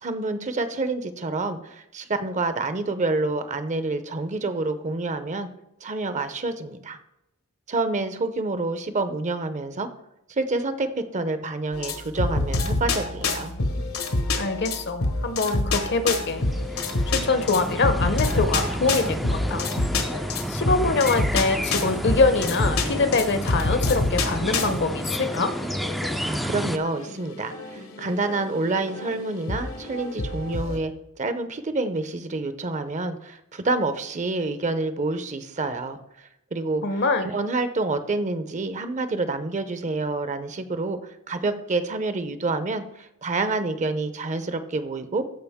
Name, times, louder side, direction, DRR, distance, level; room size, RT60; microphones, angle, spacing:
voice 1, 0.0-5.5 5.8-7.0 7.7-9.9 10.3-13.5 26.2-30.9 31.2-36.0 36.5-36.8 37.2-45.2, right 3 dB, 35° right, 11 dB, 0.7 m, -28 dB
sound 1, 11.7-30.8, left 2 dB, 80° left, 1.4 m, -28 dB
voice 2, 14.4-16.4 17.1-19.7 20.5-25.5 36.8-37.3, left 3 dB, 55° left, 10 dB, 0.8 m, -24 dB
sound 2, 15.9-26.8, equal, ahead, 0.4 m, -31 dB
14.0 x 4.9 x 3.6 m, 0.86 s
head